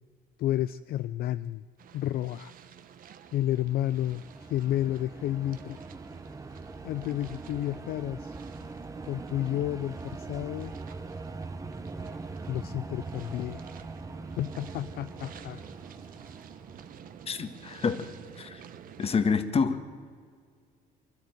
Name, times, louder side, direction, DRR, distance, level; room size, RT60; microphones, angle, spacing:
voice 1, 0.4-1.6 1.9-2.5 3.3-5.8 6.8-8.4 9.0-10.7 12.5-13.7 14.4-15.7, left 13 dB, 65° left, 15 dB, 0.4 m, -31 dB
sound 1, 1.8-19.4, right 8 dB, 55° right, 1.3 m, -51 dB
sound 2, 3.3-17.8, right 3 dB, 20° right, 1.0 m, -42 dB
voice 2, 17.3-18.6 19.0-19.8, left 5 dB, 35° left, 10 dB, 1.4 m, -28 dB
25.0 x 12.5 x 9.3 m, 2.1 s
cardioid pair, 110°, 17 cm